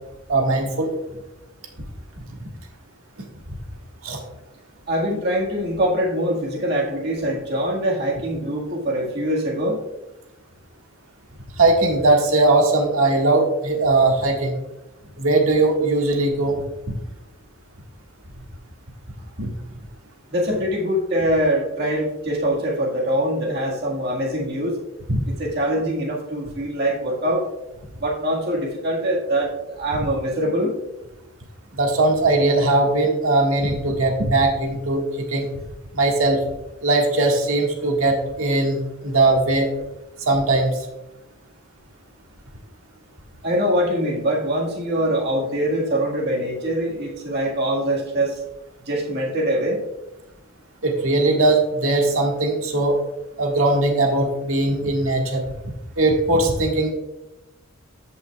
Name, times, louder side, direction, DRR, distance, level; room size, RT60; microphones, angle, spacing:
voice 1, 0.3-0.9 2.4-2.5 4.0-4.2 11.6-14.5 15.2-16.6 19.4-19.5 25.1-25.2 31.7-35.5 35.9-36.4 36.8-39.7 40.2-40.7 50.8-53.0 53.4-55.4 56.0-56.9, right 2 dB, 80° right, 1 dB, 1.7 m, -19 dB
voice 2, 4.9-9.8 20.3-24.8 25.3-27.5 28.0-30.8 43.4-48.4 48.9-49.8, equal, 50° right, -2 dB, 1.7 m, -23 dB
14.5 x 5.5 x 2.3 m, 0.97 s
head